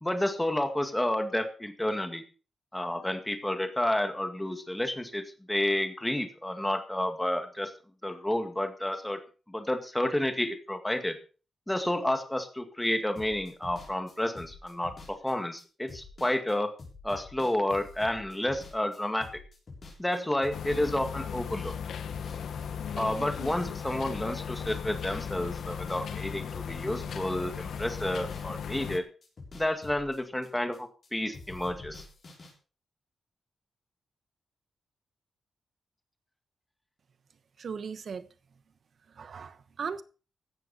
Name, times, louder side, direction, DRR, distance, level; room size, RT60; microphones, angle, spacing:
voice 1, 0.0-2.2 2.7-5.2 5.5-7.7 8.0-9.2 9.5-11.2 11.7-16.7 17.0-19.3 20.0-21.7 23.0-29.0 29.5-32.0, left 1 dB, 5° left, 2.0 m, -30 dB
sound 1, 13.2-21.8 22.1-26.2 26.5-29.0 29.2-31.1 31.3-32.5, left 3 dB, 40° left, 6.6 m, -48 dB
sound 2, 20.5-29.0, left 7 dB, 80° left, 1.3 m, -37 dB
voice 2, 37.6-38.3 39.2-40.0, right 6 dB, 50° right, 1.1 m, -37 dB
16.0 x 12.0 x 4.3 m
wide cardioid pair, 165°, 0 cm